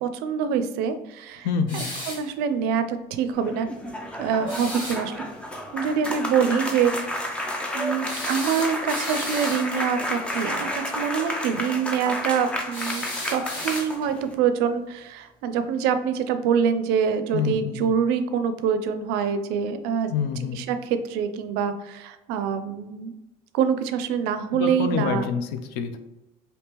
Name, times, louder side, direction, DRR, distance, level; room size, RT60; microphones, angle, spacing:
voice 1, 0.0-1.5 1.7-3.7 4.2-5.2 5.7-6.9 7.7-20.1 20.5-23.1 23.5-25.3, right 7 dB, 80° right, 10 dB, 0.4 m, -25 dB
voice 2, 1.4-1.9 17.3-17.8 20.1-20.6 24.5-26.0, left 6 dB, 80° left, 9 dB, 0.5 m, -27 dB
sound 1, 1.7-2.3 4.5-5.0 8.0-9.7 12.7-14.1, left 1 dB, 30° left, 1.4 m, -34 dB
sound 2, 3.3-14.3, left 1 dB, 5° left, 0.3 m, -31 dB
3.5 x 2.8 x 2.9 m, 1.0 s
cardioid pair, 180°, 16 cm